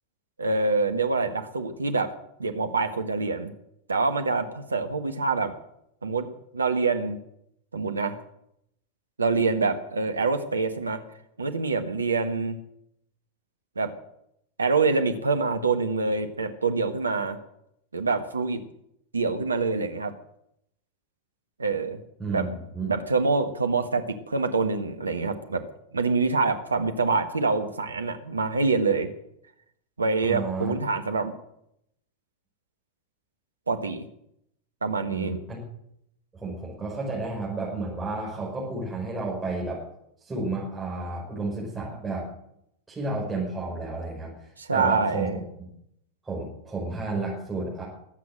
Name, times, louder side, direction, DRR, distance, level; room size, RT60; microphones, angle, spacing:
voice 1, 0.4-2.1 2.4-3.5 3.9-5.5 6.0-7.2 7.7-8.2 9.2-11.0 11.4-12.6 13.7-13.9 14.6-17.4 17.9-18.6 19.1-20.1 21.6-22.0 22.3-22.4 22.9-25.6 25.9-29.1 30.0-31.3 33.7-34.1 34.8-35.4 44.6-45.4, right 4 dB, 75° right, 8 dB, 1.4 m, -25 dB
voice 2, 22.2-22.9 30.2-30.7 35.1-35.6 36.3-39.8 40.2-42.3 42.9-45.3 45.6-45.7 46.2-47.8, right 3 dB, 15° right, -5 dB, 5.6 m, -32 dB
21.5 x 8.5 x 7.7 m, 0.78 s
figure-of-eight pair, 90°, 0 cm